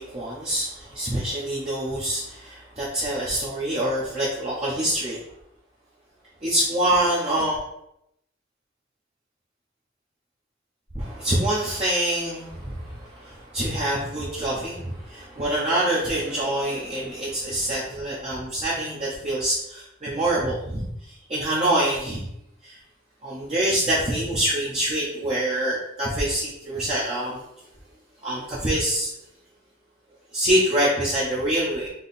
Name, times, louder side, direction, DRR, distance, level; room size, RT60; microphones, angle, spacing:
voice 1, 0.0-5.3 6.4-7.6 10.9-22.3 22.6-22.8 23.2-27.7 28.2-29.1 30.3-31.9, right 1 dB, 30° right, -7 dB, 0.8 m, -25 dB
3.7 x 3.0 x 4.1 m, 0.80 s
head